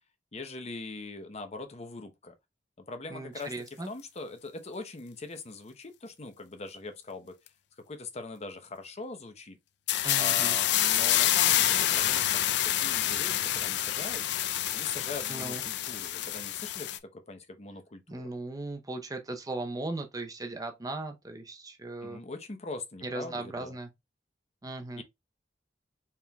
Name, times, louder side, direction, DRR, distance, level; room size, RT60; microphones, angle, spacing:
voice 1, 0.3-2.3 2.9-3.5 3.9-7.3 7.9-9.6 10.2-12.5 12.8-14.2 14.7-18.2 22.0-23.7 25.0-25.1, left 3 dB, 40° left, 0.8 m, -41 dB
voice 2, 3.1-3.9 10.0-10.6 15.3-15.6 18.1-22.2 23.0-23.9 24.6-25.0, right 2 dB, 20° right, 0.7 m, -37 dB
sound 1, 9.9-17.0, left 12 dB, 70° left, 0.4 m, -27 dB
4.4 x 3.6 x 2.3 m
head